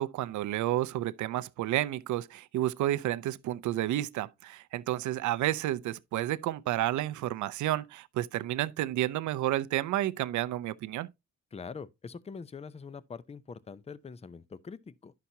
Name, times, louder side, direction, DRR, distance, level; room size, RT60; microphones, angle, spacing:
voice 1, 0.0-11.1, right 14 dB, 75° right, 0.6 m, -31 dB
voice 2, 11.5-15.1, left 5 dB, 20° left, 0.6 m, -44 dB
11.0 x 5.8 x 2.7 m
cardioid pair, 90°, 30 cm